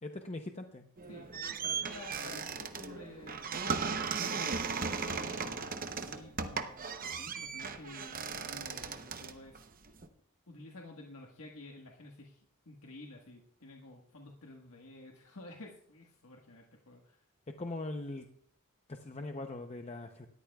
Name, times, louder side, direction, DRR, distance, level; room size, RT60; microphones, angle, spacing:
voice 1, 0.0-0.9 17.6-18.3 18.9-20.3, left 2 dB, 30° left, 5 dB, 0.7 m, -41 dB
sound 1, 1.0-10.1, right 5 dB, 40° right, 0.8 m, -37 dB
voice 2, 1.1-4.5 4.9-5.6 5.9-6.7 7.1-9.9 10.5-17.2, left 2 dB, 75° left, 0 dB, 1.4 m, -51 dB
19.5 x 13.5 x 2.3 m, 0.68 s
head